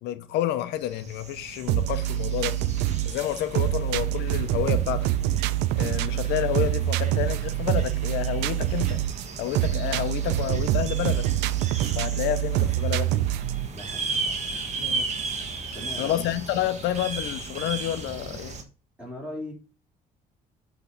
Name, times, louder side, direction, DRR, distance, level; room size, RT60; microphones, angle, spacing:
voice 1, 0.0-2.6 3.0-5.1 5.7-9.0 9.4-11.3 12.0-13.2 14.8-15.1 16.0-18.6, left 12 dB, 90° left, 0.6 m, -29 dB
sound 1, 0.8-18.6, right 4 dB, 45° right, 1.3 m, -36 dB
sound 2, 1.7-13.7, right 13 dB, 90° right, 0.4 m, -26 dB
voice 2, 13.7-14.6 15.7-16.3 19.0-19.5, left 1 dB, 5° right, 3.4 m, -39 dB
8.1 x 3.3 x 5.7 m
cardioid pair, 110°, 17 cm